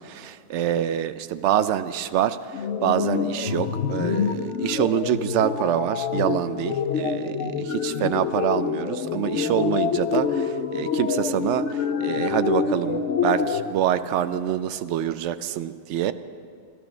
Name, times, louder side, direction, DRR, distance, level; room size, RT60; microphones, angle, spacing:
voice 1, 0.0-16.1, right 11 dB, 75° right, 12 dB, 0.9 m, -26 dB
sound 1, 2.5-13.6, left 6 dB, 85° left, 1.1 m, -26 dB
13.5 x 13.0 x 6.1 m, 2.4 s
omnidirectional pair, 1.2 m